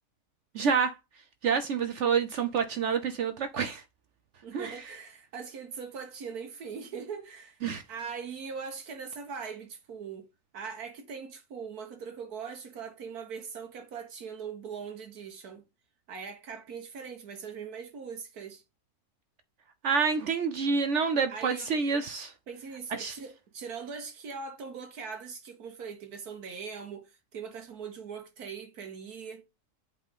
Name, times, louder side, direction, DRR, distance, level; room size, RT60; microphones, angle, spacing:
voice 1, 0.5-1.0 1.4-3.8 4.5-4.9 7.6-7.8 19.8-22.3 22.9-23.2, right 5 dB, 60° right, 0.8 m, -28 dB
voice 2, 4.4-7.6 7.9-10.3 10.5-15.6 16.1-18.6 21.3-21.7 22.5-29.5, right 6 dB, 80° right, 1.5 m, -41 dB
8.2 x 3.7 x 3.6 m
omnidirectional pair, 1.6 m